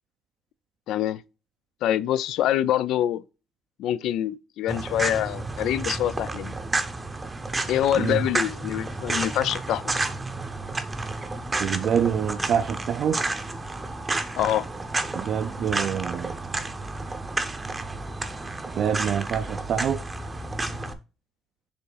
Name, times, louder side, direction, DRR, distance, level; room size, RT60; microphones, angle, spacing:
voice 1, 0.9-1.2 1.8-3.2 3.8-6.5 7.7-9.8 14.3-14.7, left 11 dB, 80° left, 0.4 m, -25 dB
sound 1, 4.7-20.9, right 2 dB, 15° right, 0.7 m, -31 dB
voice 2, 11.6-13.2 15.1-16.4 18.8-20.0, right 8 dB, 55° right, 0.4 m, -26 dB
7.0 x 3.6 x 4.0 m
cardioid pair, 155°, 0 cm